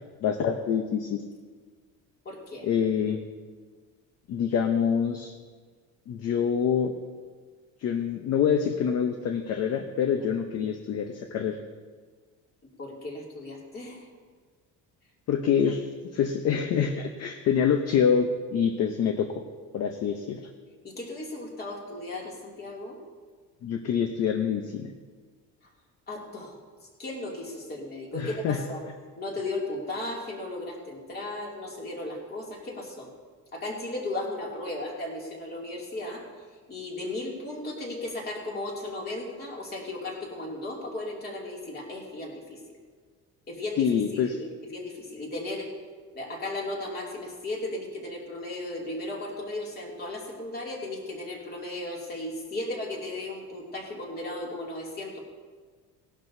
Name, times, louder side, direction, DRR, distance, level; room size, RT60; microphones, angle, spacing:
voice 1, 0.2-1.2 2.6-3.2 4.3-5.3 6.1-6.9 7.8-11.6 15.3-19.3 19.7-20.4 23.6-24.9 28.1-28.6 43.8-44.4, left 7 dB, 45° left, 6 dB, 0.8 m, -26 dB
voice 2, 2.2-2.7 12.8-14.1 20.8-23.0 26.1-26.6 27.0-28.8 29.2-33.1 33.5-36.3 36.7-42.8 43.5-45.7 46.1-55.2, left 2 dB, 30° left, -2 dB, 2.6 m, -36 dB
18.5 x 11.5 x 2.7 m, 1.5 s
cardioid pair, 160°, 34 cm